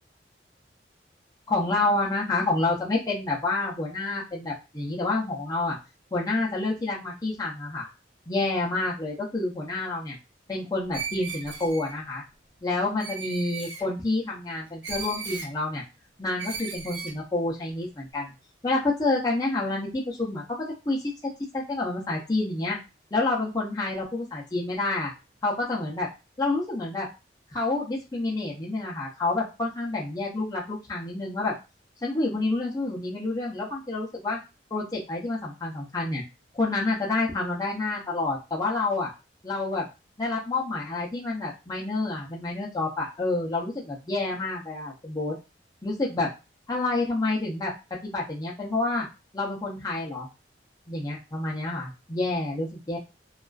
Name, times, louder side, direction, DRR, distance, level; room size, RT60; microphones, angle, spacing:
voice 1, 1.5-5.8 6.1-7.9 8.3-10.2 10.5-12.2 12.6-15.8 16.2-18.3 18.6-20.4 20.9-21.1 21.5-22.8 23.1-25.1 25.4-26.1 26.4-27.1 27.5-31.5 32.0-34.4 34.7-36.2 36.5-39.1 39.4-39.9 40.2-45.3 45.8-46.3 46.7-47.7 48.0-49.1 49.3-50.3 50.9-53.0, left 2 dB, 20° left, -4 dB, 0.5 m, -28 dB
Screech, 10.9-11.9 13.0-13.8 14.8-15.5 16.4-17.2, right 5 dB, 75° right, 0.7 m, -36 dB
2.4 x 2.2 x 2.3 m, 0.28 s
head